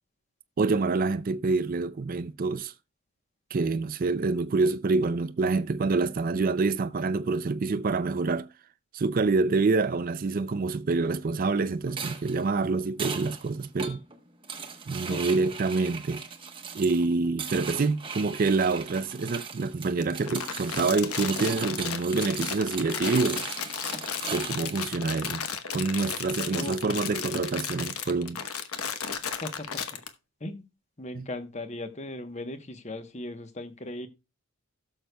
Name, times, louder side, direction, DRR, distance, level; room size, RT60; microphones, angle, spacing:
voice 1, 0.6-2.7 3.5-8.5 8.9-14.0 14.9-16.2 16.7-23.5 24.3-25.4 25.7-28.4, right 3 dB, 40° right, 0.4 m, -26 dB
sound 1, 11.9-24.9, right 5 dB, 25° right, 1.0 m, -38 dB
Crumpling crinkling, 20.0-30.1, left 7 dB, 80° left, 1.0 m, -34 dB
voice 2, 29.4-30.0 30.4-30.7 31.0-34.1, left 2 dB, 30° left, 0.9 m, -38 dB
17.0 x 6.6 x 2.2 m
head